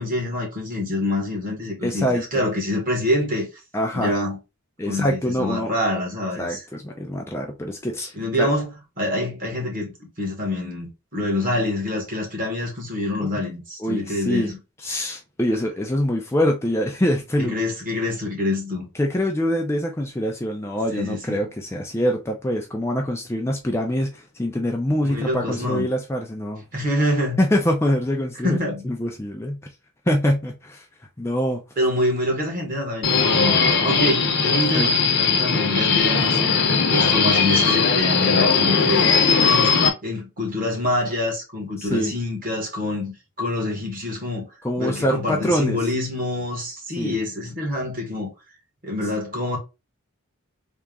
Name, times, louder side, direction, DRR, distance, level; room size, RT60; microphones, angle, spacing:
voice 1, 0.0-3.5 3.9-4.4 4.8-6.6 8.1-8.7 9.0-14.6 17.4-18.8 20.9-21.4 24.9-25.9 26.7-27.4 28.4-28.9 31.8-36.4 36.9-39.2 39.4-39.7 40.0-44.5 44.8-48.3 48.8-49.6, left 1 dB, 40° right, 1.6 m, -26 dB
voice 2, 1.8-2.5 3.7-4.1 4.8-5.7 6.4-8.5 13.2-13.3 13.8-14.5 14.8-17.5 19.0-26.6 27.4-28.6 28.8-29.6 30.1-30.9 31.2-31.6 34.7-34.9 36.2-36.5 41.8-42.1 44.6-45.8 47.0-47.2, equal, 10° left, 0.4 m, -24 dB
Subway metro underground, 33.0-39.9, left 5 dB, 50° left, 0.8 m, -19 dB
3.5 x 2.9 x 3.6 m
head